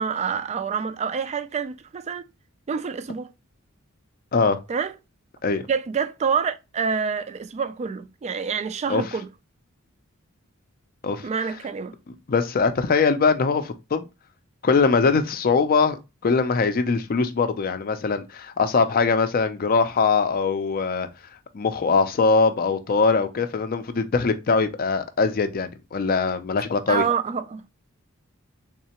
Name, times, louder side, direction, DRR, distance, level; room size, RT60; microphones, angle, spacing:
voice 1, 0.0-2.2 2.7-3.3 4.7-4.9 5.7-9.3 11.2-11.9 26.9-27.6, right 6 dB, 30° right, 0.3 m, -27 dB
voice 2, 12.3-14.1 14.6-16.0 16.2-21.1 21.5-27.0, left 4 dB, 45° left, 0.5 m, -22 dB
3.6 x 3.2 x 2.9 m
head